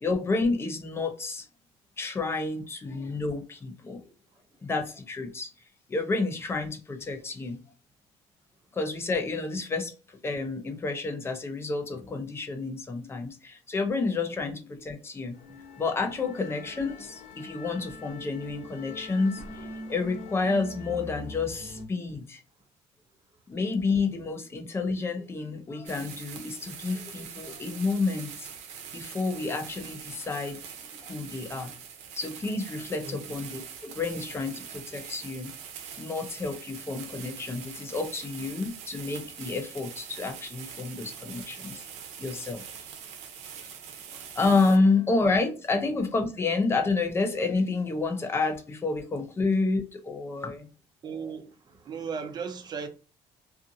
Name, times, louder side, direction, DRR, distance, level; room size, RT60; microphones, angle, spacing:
voice 1, 0.0-1.5 2.0-4.0 4.6-5.5 5.9-7.6 8.7-9.9 10.2-15.4 15.8-22.4 23.5-28.5 28.9-30.6 31.0-31.7 32.2-35.5 36.0-41.8 42.2-42.6 44.4-50.7, left 3 dB, 20° left, 0.6 m, -29 dB
sound 1, 15.3-21.8, left 2 dB, 75° left, 0.7 m, -43 dB
sound 2, 25.9-44.8, right 7 dB, 85° right, 0.6 m, -43 dB
voice 2, 51.0-52.9, right 6 dB, 40° right, 0.6 m, -36 dB
2.5 x 2.5 x 2.6 m
cardioid pair, 125°, 12 cm